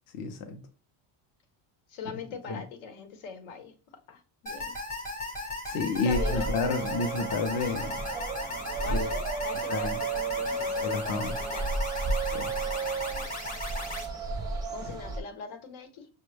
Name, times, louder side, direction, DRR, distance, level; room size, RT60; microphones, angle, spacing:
voice 1, 0.1-0.6 2.5-2.6 5.7-8.0 8.9-9.1 9.7-9.9 10.8-11.3 12.3-12.5, left 4 dB, 45° left, 0.5 m, -30 dB
voice 2, 1.9-4.7 6.0-6.5 8.8-11.8 14.7-16.1, left 5 dB, 80° left, 1.0 m, -41 dB
sound 1, 4.5-14.1, left 2 dB, 15° left, 0.8 m, -37 dB
sound 2, 6.1-15.2, right 3 dB, 10° right, 0.4 m, -32 dB
6.1 x 2.1 x 3.2 m
cardioid pair, 170°, 47 cm